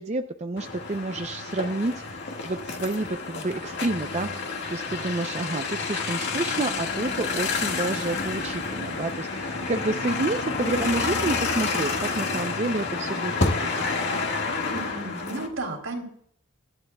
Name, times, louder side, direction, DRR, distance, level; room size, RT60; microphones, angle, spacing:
voice 1, 0.0-1.9 2.4-13.7, right 2 dB, 35° right, 6 dB, 0.6 m, -29 dB
sound 1, 0.6-15.5, left 4 dB, 55° left, 1.9 m, -29 dB
voice 2, 14.7-16.0, right 2 dB, 80° right, 1 dB, 3.4 m, -33 dB
24.5 x 11.5 x 2.3 m, 0.66 s
head